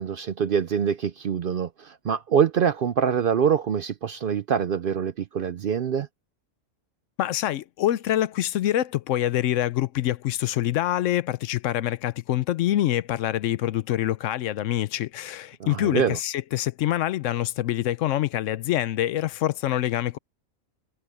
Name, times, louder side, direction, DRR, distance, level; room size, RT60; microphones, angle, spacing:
voice 1, 0.0-6.1 15.6-16.2, right 7 dB, 60° right, 0.6 m, -25 dB
voice 2, 7.2-20.2, left 13 dB, 75° left, 0.9 m, -25 dB
omnidirectional pair, 1.3 m